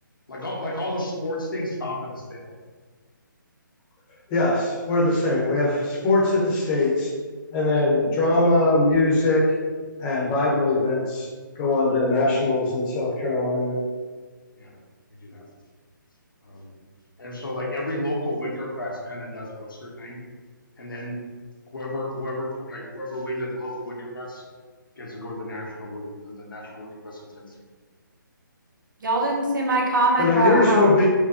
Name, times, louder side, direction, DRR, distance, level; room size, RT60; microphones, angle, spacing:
voice 1, 0.3-2.5 14.6-14.7 15.1-15.4 16.4-16.7 17.2-20.2 20.8-21.2 21.7-24.4 25.0-27.5, left 1 dB, 80° left, -2 dB, 1.1 m, -32 dB
voice 2, 4.3-7.1 7.5-9.5 10.0-11.3 11.6-13.8 30.2-31.1, left 2 dB, 25° left, -4 dB, 0.9 m, -21 dB
voice 3, 29.0-31.1, right 2 dB, 70° right, -1 dB, 1.0 m, -22 dB
4.9 x 2.2 x 2.8 m, 1.4 s
figure-of-eight pair, 150°, 11 cm